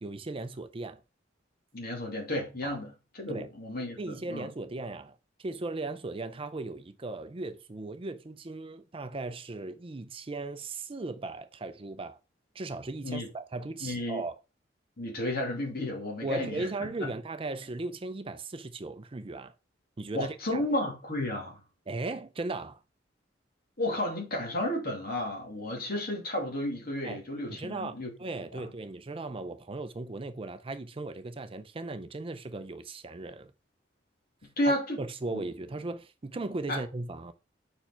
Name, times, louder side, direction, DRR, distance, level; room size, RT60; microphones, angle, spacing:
voice 1, 0.0-1.0 2.6-2.8 3.3-3.5 4.0-12.2 12.5-14.4 16.2-19.5 20.0-20.6 21.9-22.8 27.0-27.2 27.5-33.5 34.7-37.3, right 2 dB, 30° right, 0.5 m, -37 dB
voice 2, 1.7-4.5 13.0-13.3 13.8-14.2 15.0-17.1 20.1-21.6 23.8-28.1 28.5-28.7 34.6-35.0 35.3-35.4 36.7-36.8, left 1 dB, 55° left, 2.6 m, -32 dB
5.6 x 4.8 x 4.3 m
head